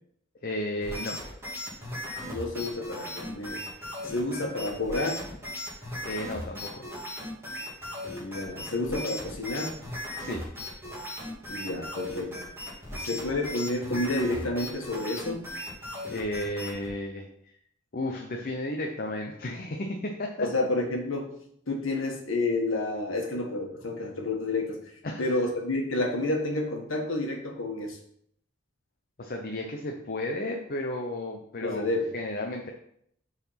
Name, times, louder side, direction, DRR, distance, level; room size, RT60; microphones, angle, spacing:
voice 1, 0.4-1.2 6.0-6.9 10.2-10.4 16.1-17.5 17.9-20.5 21.9-22.0 25.0-25.3 29.2-31.9 32.1-32.7, left 1 dB, 50° left, 2 dB, 0.7 m, -33 dB
sound 1, 0.8-16.9, left 1 dB, 15° right, 2.2 m, -37 dB
voice 2, 2.3-3.6 4.0-5.2 8.1-9.8 11.5-12.4 12.9-15.4 20.4-21.3 21.7-24.8 25.2-28.0 31.6-32.1, left 2 dB, 75° left, 1 dB, 1.6 m, -30 dB
6.9 x 4.1 x 5.8 m, 0.69 s
head